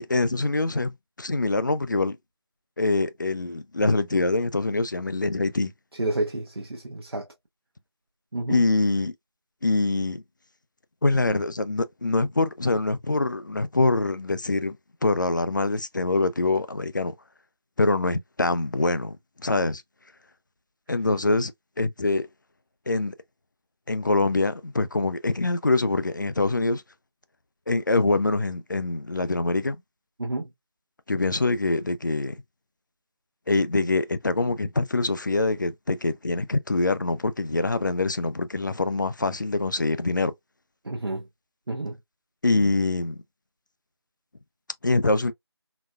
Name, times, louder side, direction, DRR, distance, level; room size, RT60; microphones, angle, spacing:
voice 1, 0.0-2.2 2.8-5.7 8.5-9.1 9.6-10.2 11.0-14.8 15.0-17.1 17.8-19.2 19.4-19.8 20.9-21.5 21.8-22.3 22.9-23.2 23.9-26.8 27.7-29.8 31.1-32.3 33.5-40.3 42.4-43.2 44.8-45.3, left 2 dB, 45° left, 0.4 m, -24 dB
voice 2, 6.0-7.3 8.3-8.6 30.2-30.5 40.8-41.3 41.7-42.0, right 2 dB, 60° right, 0.8 m, -29 dB
3.9 x 2.1 x 2.3 m
figure-of-eight pair, 170°, 14 cm